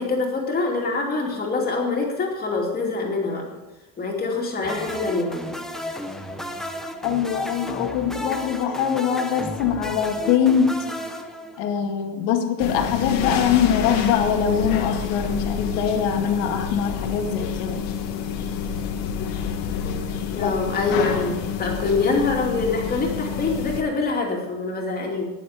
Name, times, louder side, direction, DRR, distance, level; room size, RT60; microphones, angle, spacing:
voice 1, 0.0-3.4 4.0-5.4 20.3-21.3 21.6-25.3, left 3 dB, 20° left, -1 dB, 2.7 m, -25 dB
sound 1, 4.6-11.9, equal, ahead, 0.4 m, -33 dB
voice 2, 7.0-10.8 11.6-17.8 20.4-20.5, left 8 dB, 65° left, 4 dB, 2.2 m, -23 dB
sound 2, 12.6-23.8, left 7 dB, 50° left, 1.7 m, -28 dB
20.0 x 7.1 x 5.0 m, 1.0 s
cardioid pair, 160°, 45 cm